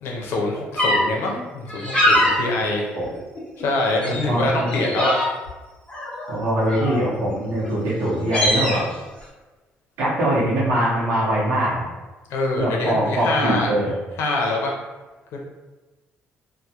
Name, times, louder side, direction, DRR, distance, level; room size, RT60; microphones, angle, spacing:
voice 1, 0.0-2.8 3.6-5.2 12.3-13.7 14.2-14.7 15.3-15.4, left 2 dB, 75° left, -1 dB, 0.6 m, -24 dB
sound 1, 0.8-1.0 1.7-2.3 2.9-3.7 4.0-4.2 4.7-5.5 5.9-7.1 7.6-7.7 8.0-8.8, left 1 dB, 25° left, 0.8 m, -22 dB
voice 2, 4.1-4.7 6.3-8.9 10.0-11.8 12.6-13.9, right 1 dB, 80° right, -9 dB, 0.7 m, -22 dB
2.2 x 2.1 x 2.8 m, 1.2 s
cardioid pair, 120°, 4 cm